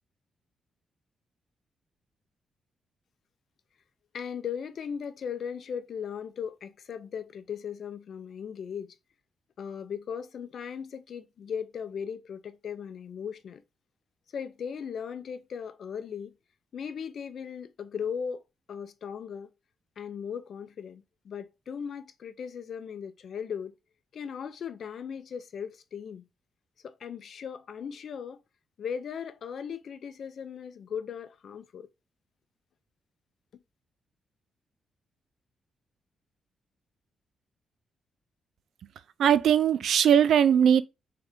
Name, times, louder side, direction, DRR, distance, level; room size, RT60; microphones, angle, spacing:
voice 1, 4.1-9.0 9.6-13.6 14.3-16.3 16.7-18.4 18.7-19.5 20.0-23.7 24.1-26.3 26.8-28.4 28.8-31.9, left 7 dB, 60° left, 0.5 m, -37 dB
voice 2, 39.2-40.8, right 9 dB, 70° right, 0.3 m, -20 dB
3.7 x 3.3 x 3.6 m
cardioid pair, 120°, 0 cm